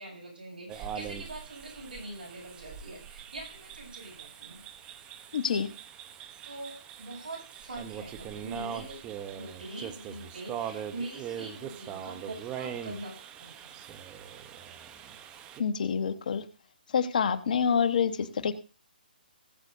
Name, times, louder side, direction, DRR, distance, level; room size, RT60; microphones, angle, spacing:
voice 1, 0.0-4.6 6.4-9.0 9.3-13.8, right 2 dB, 70° right, 0 dB, 7.3 m, -43 dB
sound 1, 0.7-15.6, right 9 dB, 20° right, 0.9 m, -42 dB
voice 2, 5.3-5.7 15.6-16.4 16.9-18.5, left 6 dB, 55° left, 11 dB, 1.2 m, -27 dB
19.0 x 8.2 x 2.7 m, 0.35 s
hypercardioid pair, 150°, 5 cm